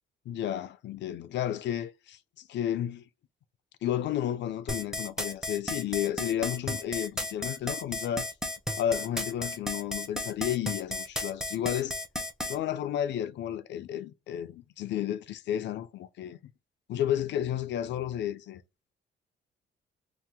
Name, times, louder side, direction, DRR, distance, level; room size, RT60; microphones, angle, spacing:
voice 1, 0.3-3.0 3.8-8.3 8.8-11.9 12.5-16.4 16.9-18.6, left 10 dB, 65° left, 0.4 m, -32 dB
sound 1, 4.7-12.6, left 1 dB, 5° right, 0.5 m, -33 dB
2.8 x 2.1 x 3.3 m
cardioid pair, 90°, 20 cm